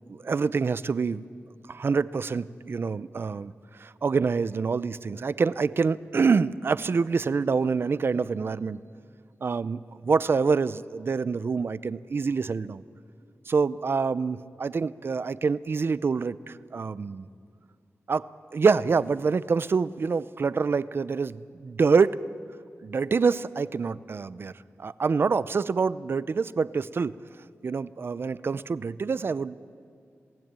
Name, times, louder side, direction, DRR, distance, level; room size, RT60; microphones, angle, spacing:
voice 1, 0.1-1.3 1.7-3.5 3.8-8.8 9.4-12.8 13.5-17.3 18.1-22.2 22.8-24.5 24.8-27.2 27.6-29.6, right 5 dB, 50° right, 17 dB, 0.6 m, -26 dB
27.5 x 18.5 x 8.9 m, 2.5 s
wide cardioid pair, 140°, 5 cm